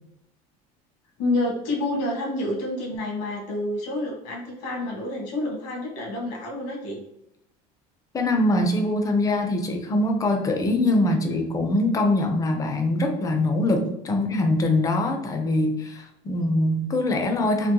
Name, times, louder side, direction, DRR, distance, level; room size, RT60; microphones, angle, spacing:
voice 1, 1.2-7.0 14.1-14.3, left 2 dB, 80° left, -1 dB, 1.4 m, -28 dB
voice 2, 8.1-17.7, left 1 dB, 25° left, 5 dB, 0.5 m, -23 dB
3.7 x 2.1 x 2.8 m, 0.81 s
cardioid pair, 130°, 15 cm